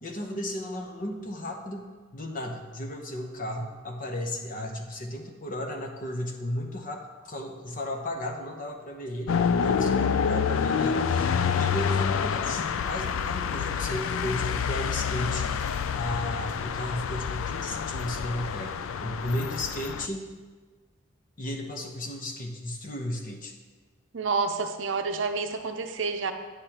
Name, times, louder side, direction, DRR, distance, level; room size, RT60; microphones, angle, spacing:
voice 1, 0.0-15.5 15.9-20.3 21.4-23.6, left 1 dB, 40° left, 3 dB, 0.9 m, -34 dB
sound 1, 9.3-20.1, left 6 dB, 80° left, 0.3 m, -28 dB
voice 2, 24.1-26.3, right 4 dB, 65° right, 6 dB, 0.6 m, -29 dB
9.6 x 8.2 x 2.9 m, 1.4 s
head